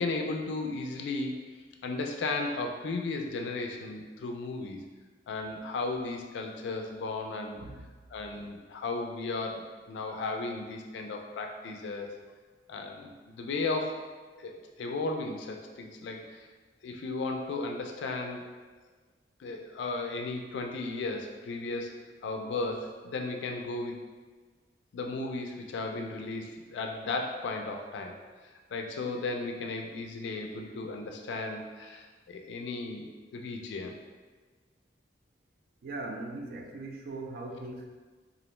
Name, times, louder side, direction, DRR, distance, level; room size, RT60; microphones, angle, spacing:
voice 1, 0.0-1.4 1.8-4.8 5.3-7.6 8.1-9.6 9.9-12.2 12.7-14.1 14.4-14.5 14.8-16.5 16.8-18.4 19.4-24.0 24.9-28.1 28.7-33.9, left 3 dB, 90° left, 3 dB, 0.3 m, -35 dB
voice 2, 7.5-8.0 35.8-37.9, right 2 dB, 55° right, 2 dB, 0.3 m, -40 dB
2.5 x 2.0 x 3.0 m, 1.4 s
head